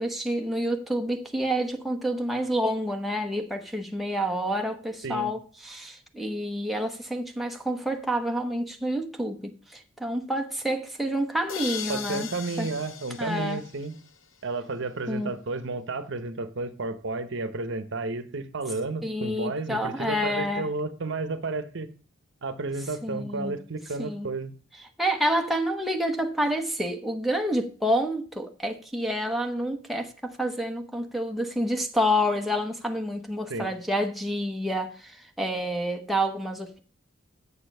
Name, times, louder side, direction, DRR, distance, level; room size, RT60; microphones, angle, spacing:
voice 1, 0.0-12.3 12.6-12.7 13.2-13.6 15.1-15.3 19.0-20.7 23.0-23.6 24.0-24.3 25.0-36.8, equal, ahead, 1.0 m, -28 dB
sound 1, 11.5-14.3, left 8 dB, 65° left, 0.9 m, -38 dB
voice 2, 11.9-14.0 14.4-21.9 22.4-24.5 33.5-33.7, right 3 dB, 60° right, 0.9 m, -32 dB
8.5 x 6.9 x 5.4 m
head